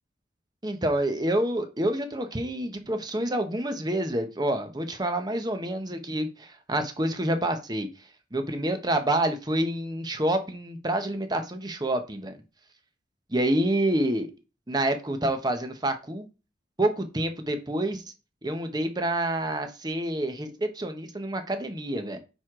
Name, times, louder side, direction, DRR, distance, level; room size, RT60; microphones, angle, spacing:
voice 1, 0.6-7.9 8.3-12.4 13.3-14.3 14.7-16.3 16.8-18.0 18.4-22.2, right 1 dB, 25° right, 7 dB, 1.0 m, -28 dB
9.3 x 4.8 x 3.8 m, 0.31 s
head